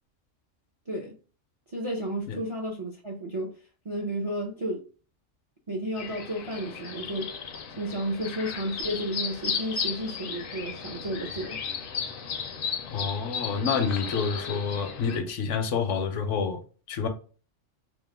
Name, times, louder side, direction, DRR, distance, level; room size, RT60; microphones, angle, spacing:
voice 1, 1.7-3.5 3.8-4.8 5.7-7.3 7.8-11.6, right 1 dB, 45° right, 0.4 m, -32 dB
sound 1, 6.0-15.2, left 6 dB, 60° left, 0.6 m, -35 dB
voice 2, 12.9-16.6 16.9-17.1, left 5 dB, 75° left, 0.9 m, -28 dB
2.9 x 2.1 x 3.3 m
omnidirectional pair, 1.3 m